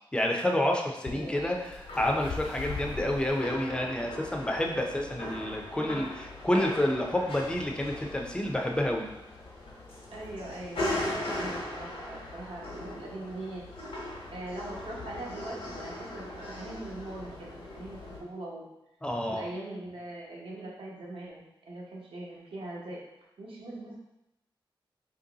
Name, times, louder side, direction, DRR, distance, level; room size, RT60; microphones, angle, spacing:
voice 1, 0.1-1.6 2.0-9.1 19.0-19.4, left 1 dB, 10° left, 1 dB, 0.4 m, -29 dB
sound 1, 1.0-18.2, left 1 dB, 90° left, 1.0 m, -39 dB
voice 2, 1.0-1.6 5.7-6.0 10.1-13.6 14.3-18.6 19.3-23.0 23.4-23.9, right 2 dB, 75° right, -4 dB, 0.9 m, -41 dB
3.0 x 2.6 x 3.8 m, 0.90 s
wide cardioid pair, 175°, 9 cm